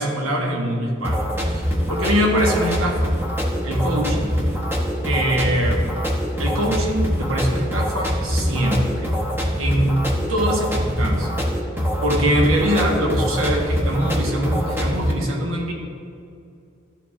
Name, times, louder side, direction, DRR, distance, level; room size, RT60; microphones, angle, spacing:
voice 1, 0.0-3.1 3.6-4.3 5.0-5.8 6.4-9.1 9.6-10.0 10.3-11.5 12.0-15.7, equal, 80° right, 0 dB, 1.2 m, -23 dB
sound 1, 1.0-15.1, equal, 10° right, 0.8 m, -24 dB
12.0 x 4.6 x 2.4 m, 2.5 s
head